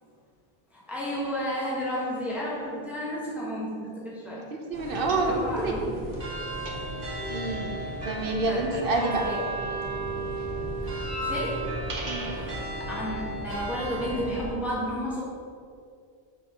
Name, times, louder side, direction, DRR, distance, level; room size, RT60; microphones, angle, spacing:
voice 1, 0.7-4.4 5.3-6.0 7.8-8.7 9.0-9.5 11.0-11.8 12.3-12.6 12.9-15.2, equal, ahead, -6 dB, 1.2 m, -33 dB
voice 2, 4.5-5.7 7.3-7.7 8.0-9.2 12.1-12.3, right 2 dB, 60° right, 2 dB, 1.0 m, -28 dB
sound 1, 4.7-14.5, right 2 dB, 45° right, 1.6 m, -34 dB
sound 2, 4.9-5.7 6.0-9.4 9.6-12.5, equal, 80° right, 1.3 m, -38 dB
6.9 x 6.0 x 3.6 m, 2.3 s
omnidirectional pair, 1.1 m